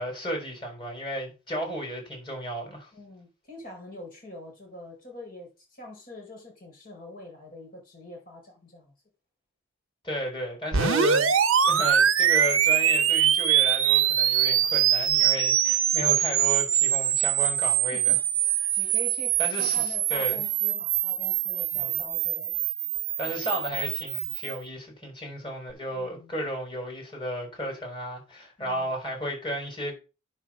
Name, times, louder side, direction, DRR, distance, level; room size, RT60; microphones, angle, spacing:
voice 1, 0.0-2.9 10.0-11.3 11.6-18.1 19.4-20.4 21.7-21.9 23.2-30.0, equal, 25° left, 4.3 m, -33 dB
voice 2, 2.9-8.9 17.9-22.6 25.9-26.3 28.6-28.9, left 2 dB, 45° left, 4.3 m, -45 dB
sound 1, 10.7-24.6, right 10 dB, 80° right, 0.9 m, -24 dB
9.8 x 4.4 x 6.2 m
head